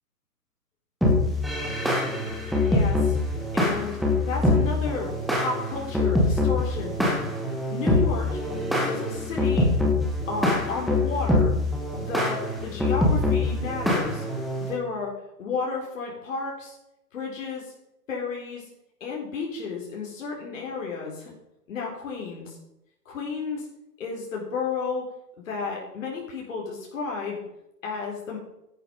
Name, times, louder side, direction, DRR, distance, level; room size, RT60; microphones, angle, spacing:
sound 1, 1.0-14.7, left 2 dB, ahead, 0.4 m, -24 dB
voice 1, 2.2-3.2 3.5-7.1 7.7-8.4 8.9-9.7 10.3-11.5 12.0-14.3 14.6-16.8 17.1-17.7 18.1-18.7 19.0-21.3 21.7-22.6 23.1-23.7 24.0-25.1 25.4-27.4 27.8-28.4, left 4 dB, 50° left, -2 dB, 4.0 m, -32 dB
12.5 x 11.0 x 5.3 m, 0.87 s
figure-of-eight pair, 135°, 48 cm